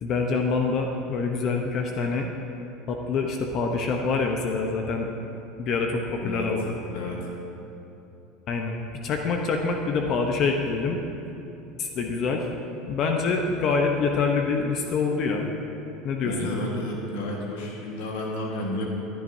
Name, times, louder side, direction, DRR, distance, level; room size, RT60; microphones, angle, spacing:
voice 1, 0.0-2.3 2.9-5.1 5.6-6.8 8.5-8.8 9.0-11.0 11.8-12.5 12.9-15.5 16.0-16.5, left 4 dB, 50° left, 3 dB, 0.8 m, -26 dB
voice 2, 6.9-7.2 16.2-18.9, left 1 dB, 80° left, -1 dB, 1.5 m, -31 dB
15.0 x 10.5 x 2.7 m, 2.9 s
supercardioid pair, 110°, 0 cm